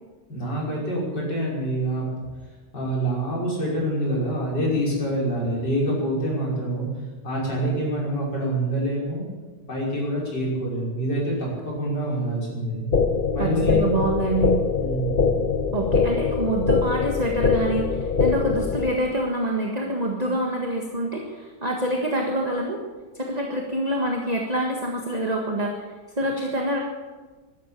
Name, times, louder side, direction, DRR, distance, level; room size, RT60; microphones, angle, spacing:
voice 1, 0.3-2.0 2.7-6.9 7.2-9.3 9.7-12.8 13.3-13.9 14.8-15.5, right 1 dB, 85° left, -4 dB, 6.4 m, -26 dB
sound 1, 12.9-18.9, left 5 dB, 40° left, 0.8 m, -23 dB
voice 2, 13.4-14.5 15.7-22.8 23.1-25.9 26.2-26.8, right 1 dB, 25° right, 0 dB, 1.7 m, -26 dB
13.5 x 12.5 x 8.5 m, 1.3 s
omnidirectional pair, 1.8 m